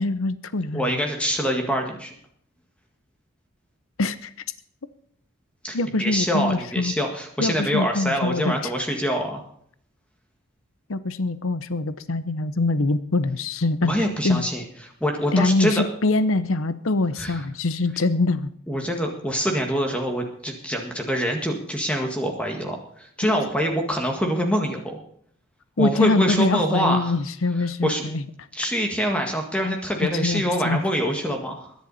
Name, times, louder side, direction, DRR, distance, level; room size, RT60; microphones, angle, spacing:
voice 1, 0.0-0.9 4.0-4.3 5.7-6.9 7.4-8.7 10.9-14.4 15.3-18.5 25.8-28.2 30.2-30.8, left 2 dB, 85° left, 13 dB, 0.8 m, -24 dB
voice 2, 0.7-2.1 5.6-9.4 13.8-14.6 15.0-15.8 17.2-17.4 18.7-25.0 25.8-27.1 27.8-28.1 28.5-31.7, equal, 5° left, 2 dB, 1.9 m, -25 dB
21.5 x 10.5 x 4.2 m, 0.64 s
head